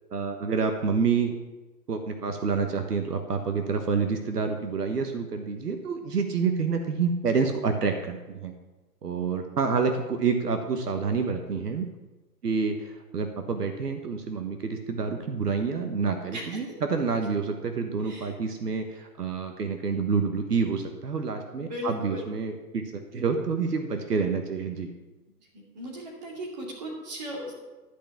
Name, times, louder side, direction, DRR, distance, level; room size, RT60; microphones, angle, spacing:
voice 1, 0.1-1.4 1.9-8.5 9.0-11.9 12.4-24.9, right 5 dB, 70° right, 6 dB, 1.4 m, -28 dB
voice 2, 21.6-22.3 25.7-27.5, equal, 25° right, -1 dB, 2.4 m, -37 dB
12.0 x 5.8 x 7.1 m, 1.1 s
hypercardioid pair, 175°, 49 cm